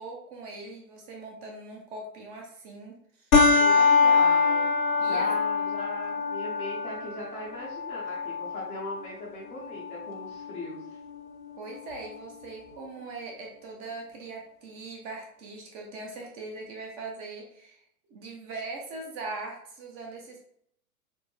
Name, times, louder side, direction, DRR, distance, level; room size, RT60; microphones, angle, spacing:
voice 1, 0.0-3.3 5.0-5.3 11.6-17.8 18.1-20.4, right 3 dB, 25° right, 1 dB, 0.7 m, -41 dB
sound 1, 3.3-12.3, left 4 dB, 65° left, 0.8 m, -25 dB
voice 2, 3.5-4.7 5.0-10.8, left 2 dB, 15° left, -4 dB, 0.6 m, -39 dB
4.3 x 2.0 x 3.2 m, 0.67 s
figure-of-eight pair, 110°, 44 cm